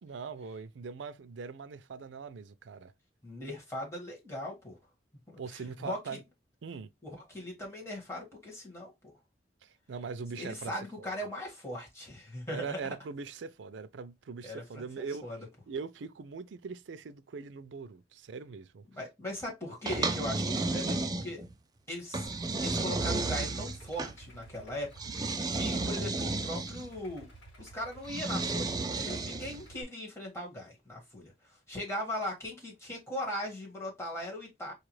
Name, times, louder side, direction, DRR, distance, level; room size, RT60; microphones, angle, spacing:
voice 1, 0.0-2.9 5.4-6.2 6.6-6.9 9.6-11.1 12.5-15.3 15.7-18.9, right 5 dB, 85° right, 0.4 m, -41 dB
voice 2, 3.2-4.8 5.3-6.0 7.0-9.1 10.3-12.8 14.4-15.5 18.9-21.4 21.9-22.3 22.6-27.3 27.6-34.7, left 1 dB, 15° left, 1.6 m, -39 dB
sound 1, 19.9-21.5 22.1-24.1 25.0-26.9 28.0-29.6, right 3 dB, 20° right, 0.4 m, -32 dB
Idling, 22.2-29.8, right 2 dB, 75° left, 1.3 m, -53 dB
4.6 x 2.4 x 3.1 m
head